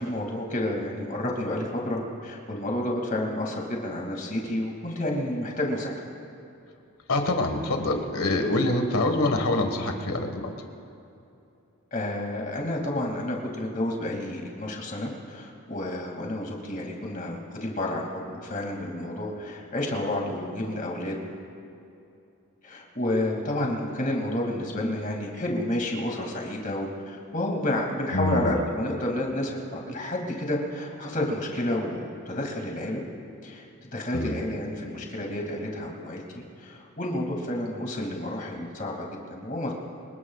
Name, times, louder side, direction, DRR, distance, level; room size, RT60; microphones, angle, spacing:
voice 1, 0.0-5.9 11.9-21.2 22.6-33.0 33.4-36.2 36.6-39.7, left 1 dB, 35° left, 0 dB, 2.5 m, -30 dB
voice 2, 7.1-10.5 28.1-28.6 34.1-34.4, left 2 dB, 75° left, 5 dB, 1.6 m, -25 dB
27.0 x 20.0 x 2.4 m, 2.7 s
head